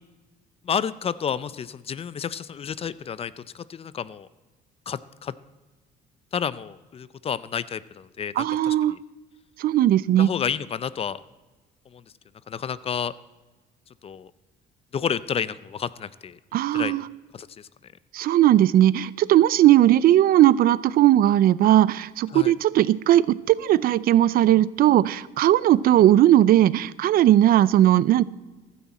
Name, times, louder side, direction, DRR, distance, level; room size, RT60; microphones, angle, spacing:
voice 1, 0.6-4.3 4.9-5.3 6.3-9.0 10.2-11.2 11.9-12.0 12.5-13.1 14.0-14.3 14.9-16.4 16.7-16.9 17.3-17.7 22.3-22.5, left 7 dB, 35° left, 17 dB, 0.5 m, -30 dB
voice 2, 8.4-9.0 9.6-10.3 16.5-17.0 18.1-28.2, right 13 dB, 60° right, 19 dB, 0.5 m, -18 dB
15.0 x 12.5 x 4.2 m, 1.2 s
cardioid pair, 110°, 17 cm